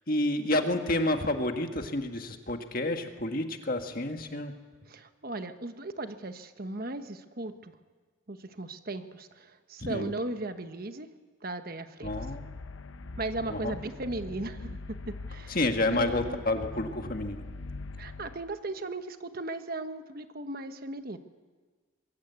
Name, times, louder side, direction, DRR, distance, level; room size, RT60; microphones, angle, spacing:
voice 1, 0.1-4.5 9.9-10.1 12.0-12.4 13.5-13.8 15.5-17.4, left 1 dB, 45° left, 5 dB, 1.8 m, -29 dB
voice 2, 4.9-7.7 8.3-11.1 11.4-12.3 13.2-14.8 15.1-15.6 15.9-16.4 18.0-21.2, right 2 dB, 45° right, 9 dB, 1.2 m, -37 dB
sound 1, 12.0-18.4, left 3 dB, 75° left, 0.8 m, -42 dB
25.0 x 22.0 x 8.3 m, 1.4 s
head